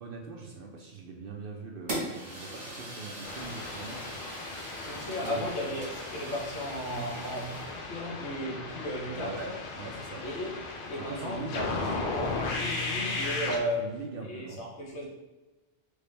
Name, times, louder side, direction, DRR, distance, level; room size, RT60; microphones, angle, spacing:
voice 1, 0.0-4.0 5.2-5.5 9.2-10.2 10.9-11.8 13.8-14.6, right 3 dB, 60° right, 0 dB, 0.6 m, -41 dB
Fire, 1.9-7.8, right 1 dB, 80° right, 2.0 m, -41 dB
sound 1, 3.2-13.6, left 3 dB, 60° left, 0.6 m, -36 dB
voice 2, 4.8-7.6 7.9-9.4 10.2-10.6 10.9-13.9 14.2-15.1, equal, 80° left, -4 dB, 1.4 m, -35 dB
4.8 x 2.1 x 3.2 m, 1.2 s
omnidirectional pair, 1.2 m